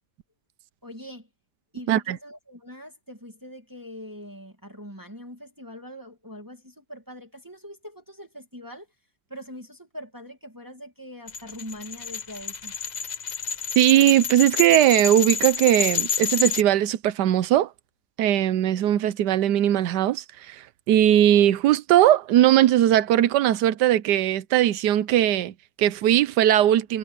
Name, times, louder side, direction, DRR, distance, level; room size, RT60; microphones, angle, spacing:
voice 1, 0.8-1.3 1.7-8.9 9.3-12.7, equal, 10° right, 2.5 m, -42 dB
sound 1, 11.3-16.6, left 6 dB, 40° left, 0.6 m, -28 dB
voice 2, 13.8-17.7 18.2-27.0, right 12 dB, 85° right, 1.3 m, -19 dB
omnidirectional pair, 1.8 m